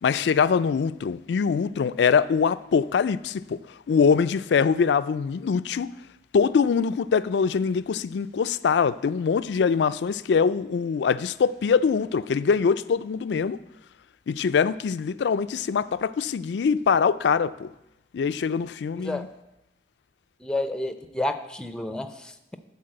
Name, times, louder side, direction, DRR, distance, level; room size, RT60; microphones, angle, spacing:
voice 1, 0.0-3.6 3.9-5.9 6.3-13.6 14.3-17.7 18.1-19.3, left 6 dB, 70° left, 0.3 m, -23 dB
voice 2, 20.4-22.6, left 1 dB, 5° left, 0.5 m, -30 dB
12.0 x 4.2 x 7.7 m
head